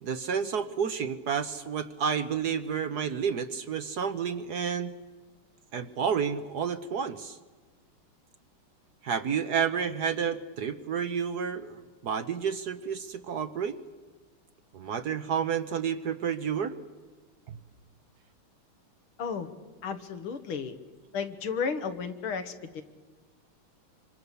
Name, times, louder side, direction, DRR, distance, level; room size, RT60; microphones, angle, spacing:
voice 1, 0.0-4.9 5.7-7.4 9.0-13.8 14.7-16.7 17.5-17.6, right 7 dB, 60° right, 10 dB, 1.2 m, -30 dB
voice 2, 19.2-19.5 19.8-20.8 21.1-22.8, left 6 dB, 75° left, 8 dB, 2.4 m, -33 dB
25.5 x 25.5 x 6.8 m, 1.4 s
omnidirectional pair, 2.4 m